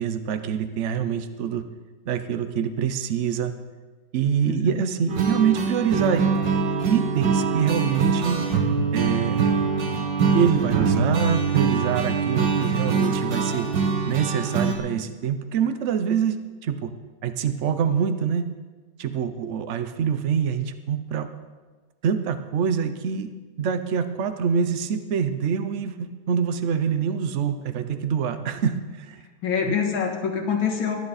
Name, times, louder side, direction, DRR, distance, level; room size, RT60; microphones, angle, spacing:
voice 1, 0.0-1.6 2.1-3.5 4.1-6.2 6.8-8.4 8.9-9.5 10.3-13.7 14.0-16.9 17.2-18.5 19.0-21.3 22.0-23.3 23.6-29.2 29.7-29.8, right 7 dB, 85° right, 10 dB, 0.6 m, -25 dB
voice 2, 4.5-4.8 29.4-31.0, left 6 dB, 70° left, 2 dB, 2.3 m, -25 dB
sound 1, 5.1-14.8, right 5 dB, 65° right, 2.0 m, -23 dB
17.5 x 10.5 x 4.1 m, 1.3 s
omnidirectional pair, 2.2 m